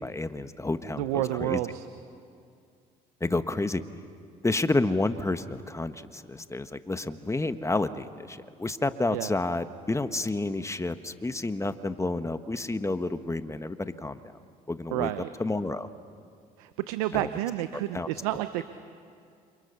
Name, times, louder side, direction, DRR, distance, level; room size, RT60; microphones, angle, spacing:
voice 1, 0.0-1.6 3.2-3.8 4.4-14.4 14.7-15.1 15.4-15.9 17.1-17.3 17.9-18.1, left 2 dB, 15° left, 10 dB, 1.4 m, -30 dB
voice 2, 1.0-1.9 9.1-9.3 14.9-15.3 16.6-18.6, right 15 dB, 85° right, 11 dB, 0.8 m, -30 dB
28.5 x 28.0 x 7.0 m, 2.4 s
hypercardioid pair, 60°, 18 cm